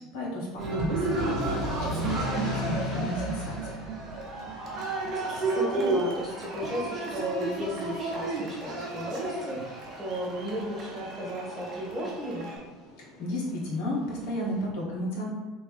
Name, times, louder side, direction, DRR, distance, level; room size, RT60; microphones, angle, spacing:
voice 1, 0.1-1.5 1.8-3.8 13.2-15.3, left 1 dB, 65° left, -4 dB, 1.1 m, -33 dB
Cheering, 0.6-12.6, right 2 dB, 45° right, 0.7 m, -32 dB
sound 1, 1.0-14.7, left 2 dB, 45° left, 0.8 m, -45 dB
voice 2, 4.6-12.5, right 1 dB, 20° right, -7 dB, 1.4 m, -35 dB
2.9 x 2.5 x 3.4 m, 1.2 s
hypercardioid pair, 75°, 0 cm